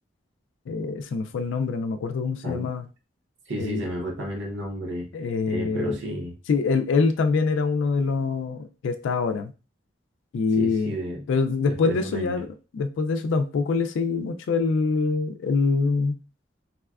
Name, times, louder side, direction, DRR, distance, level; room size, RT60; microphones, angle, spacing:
voice 1, 0.7-2.8 3.6-3.8 5.1-6.0 6.5-9.5 10.3-10.9 11.3-12.5 12.7-16.2, left 4 dB, 80° left, 8 dB, 0.3 m, -24 dB
voice 2, 3.5-5.1 5.5-6.3 10.6-11.2 11.7-12.5, equal, 70° right, -1 dB, 0.9 m, -32 dB
4.0 x 2.2 x 2.3 m, 0.33 s
head